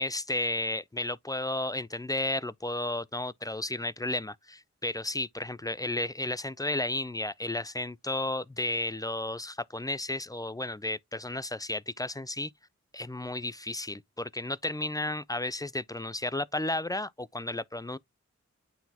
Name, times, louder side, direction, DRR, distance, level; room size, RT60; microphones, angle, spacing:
voice 1, 0.0-12.5 12.9-18.0, left 2 dB, 15° left, 0.4 m, -33 dB
9.1 x 3.9 x 2.8 m
cardioid pair, 55°, 29 cm